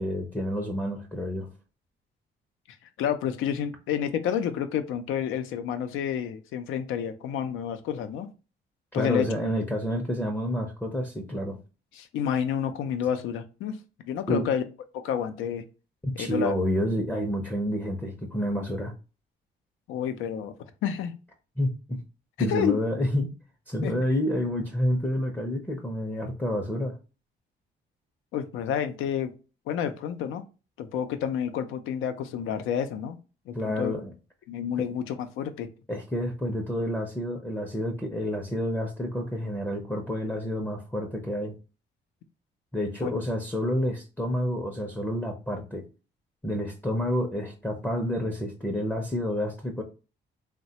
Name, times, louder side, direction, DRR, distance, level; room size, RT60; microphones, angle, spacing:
voice 1, 0.0-1.5 8.9-11.6 14.3-14.5 16.0-18.9 21.6-22.0 22.4-23.3 23.7-26.9 33.5-34.1 35.9-41.6 42.7-45.8 46.4-49.8, equal, 10° left, 1 dB, 0.5 m, -29 dB
voice 2, 2.8-8.3 8.9-9.3 11.9-13.8 14.0-14.6 14.9-15.6 16.2-16.6 19.9-20.5 20.8-21.2 22.4-22.8 23.8-24.0 28.3-29.3 29.7-30.4 30.8-33.2 33.5-33.9 34.5-35.7 43.0-43.1, left 8 dB, 90° left, 9 dB, 0.5 m, -29 dB
3.1 x 2.1 x 2.7 m, 0.32 s
cardioid pair, 90°, 20 cm